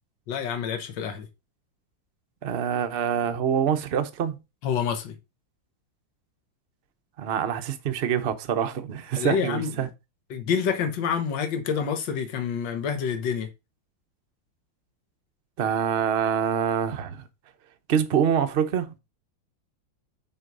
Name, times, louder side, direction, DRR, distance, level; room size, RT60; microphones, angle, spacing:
voice 1, 0.3-1.3 4.6-5.2 9.2-9.9 10.3-13.5, left 7 dB, 70° left, 1.8 m, -27 dB
voice 2, 2.4-4.4 7.2-9.9 15.6-17.2 17.9-18.9, right 8 dB, 50° right, 0.7 m, -25 dB
6.4 x 4.6 x 5.2 m
omnidirectional pair, 2.1 m